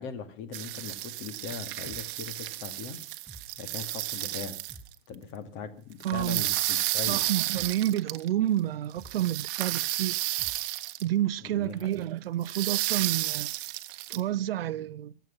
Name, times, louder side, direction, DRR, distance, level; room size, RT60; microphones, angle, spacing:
voice 1, 0.0-3.0 3.6-4.6 5.1-7.3 11.4-12.0, left 6 dB, 40° left, 2.3 m, -40 dB
sound 1, 0.5-4.8 6.0-8.3 9.0-11.0 11.8-11.9 12.4-14.2, right 19 dB, 45° right, 1.2 m, -32 dB
sound 2, 1.8-2.0 3.3-3.5 4.7-4.9 6.1-6.3 7.5-7.7 9.0-9.2 10.4-10.6, right 1 dB, ahead, 5.1 m, -48 dB
voice 2, 6.0-6.5 7.1-10.2 11.0-13.5 14.1-15.1, right 12 dB, 75° right, 0.6 m, -29 dB
23.5 x 8.1 x 5.9 m
hypercardioid pair, 120°, 29 cm